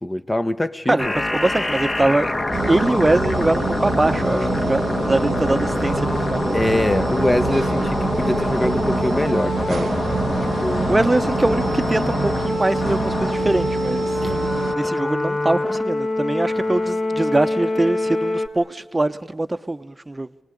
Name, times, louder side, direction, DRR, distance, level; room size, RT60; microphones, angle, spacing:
voice 1, 0.0-1.1 6.5-10.0 10.6-10.9 14.2-14.4, left 1 dB, 15° left, 1.0 m, -23 dB
voice 2, 0.9-2.3 2.7-6.4 10.9-14.1 14.4-20.3, right 2 dB, 20° right, 0.9 m, -22 dB
sound 1, 1.0-18.5, left 2 dB, 40° left, 2.0 m, -24 dB
sound 2, 2.5-14.8, right 7 dB, 85° right, 0.7 m, -27 dB
26.5 x 19.0 x 9.9 m
wide cardioid pair, 95°, 0 cm